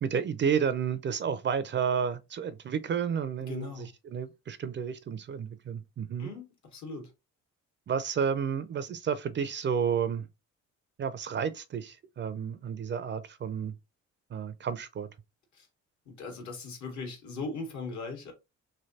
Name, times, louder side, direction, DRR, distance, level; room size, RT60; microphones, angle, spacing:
voice 1, 0.0-6.3 7.9-10.3 11.0-13.7 14.3-15.1, right 7 dB, 40° right, 0.4 m, -31 dB
voice 2, 3.4-3.9 6.2-7.1 15.5-15.7 16.1-18.3, left 3 dB, 70° left, 1.5 m, -39 dB
3.2 x 2.7 x 2.7 m
cardioid pair, 90°, 30 cm